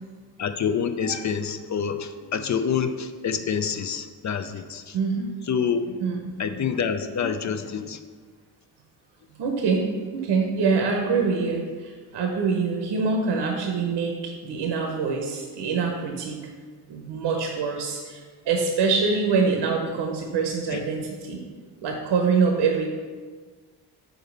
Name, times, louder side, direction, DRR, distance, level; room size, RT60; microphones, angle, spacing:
voice 1, 0.4-5.0 5.5-6.0 6.4-8.0 20.7-20.8, left 6 dB, 45° left, 9 dB, 0.4 m, -27 dB
voice 2, 4.9-5.3 6.0-6.3 9.4-16.4 16.9-21.4 21.8-22.9, right 5 dB, 80° right, 2 dB, 0.8 m, -25 dB
5.0 x 3.9 x 5.2 m, 1.5 s
cardioid pair, 80°, 41 cm